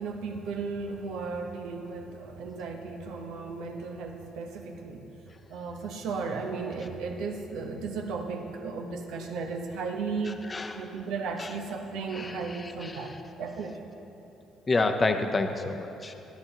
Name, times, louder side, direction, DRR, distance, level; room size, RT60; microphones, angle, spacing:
voice 1, 0.0-5.0 5.5-10.4 10.7-13.1 13.4-13.9, right 4 dB, 85° right, 3 dB, 1.0 m, -35 dB
voice 2, 12.1-13.0 14.7-16.1, left 3 dB, 20° left, 6 dB, 0.6 m, -29 dB
12.0 x 11.0 x 3.0 m, 3.0 s
cardioid pair, 125°, 0 cm